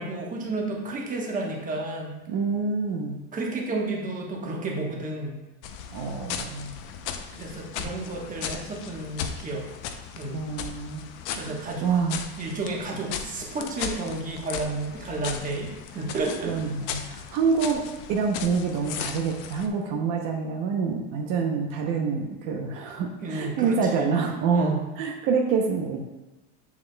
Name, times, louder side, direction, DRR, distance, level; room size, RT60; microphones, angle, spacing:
voice 1, 0.0-2.1 3.3-5.4 7.3-9.7 10.1-10.5 11.4-11.9 12.4-16.5 23.2-24.1 24.5-24.8, right 2 dB, 25° right, -1 dB, 1.1 m, -31 dB
voice 2, 2.3-3.2 5.9-6.8 10.3-11.0 11.3-12.2 16.4-17.8 18.1-26.2, right 5 dB, 60° right, 2 dB, 0.8 m, -27 dB
sound 1, 5.6-19.7, left 7 dB, 60° left, 0.6 m, -37 dB
7.0 x 6.5 x 2.2 m, 1.1 s
cardioid pair, 150°, 35 cm